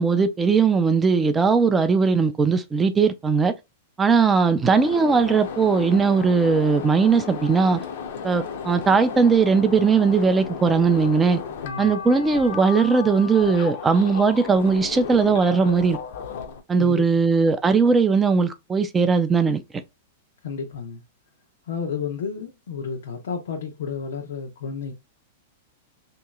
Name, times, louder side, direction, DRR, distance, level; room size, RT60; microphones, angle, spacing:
voice 1, 0.0-3.5 4.0-7.8 8.2-11.4 11.8-16.0 16.7-19.8, right 5 dB, 10° right, 0.3 m, -19 dB
sound 1, 4.7-16.6, left 6 dB, 50° left, 0.6 m, -34 dB
voice 2, 11.6-12.0 16.8-17.3 20.4-21.0 21.7-24.9, left 6 dB, 90° left, 0.9 m, -32 dB
3.1 x 2.9 x 3.5 m
supercardioid pair, 175°, 0 cm